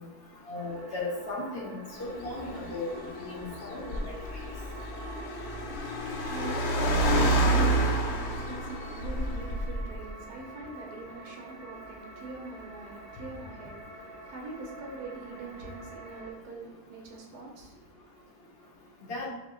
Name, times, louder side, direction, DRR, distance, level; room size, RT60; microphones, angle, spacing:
voice 1, 0.5-2.9 3.2-4.4 19.1-19.3, left 3 dB, 45° left, -4 dB, 1.1 m, -36 dB
sound 1, 0.5-16.3, right 2 dB, 40° right, 1.1 m, -47 dB
Car, 2.0-10.0, right 1 dB, 65° left, 0.6 m, -29 dB
voice 2, 6.1-17.8, right 3 dB, 75° right, 0 dB, 1.4 m, -43 dB
3.5 x 3.3 x 3.8 m, 1.1 s
omnidirectional pair, 1.7 m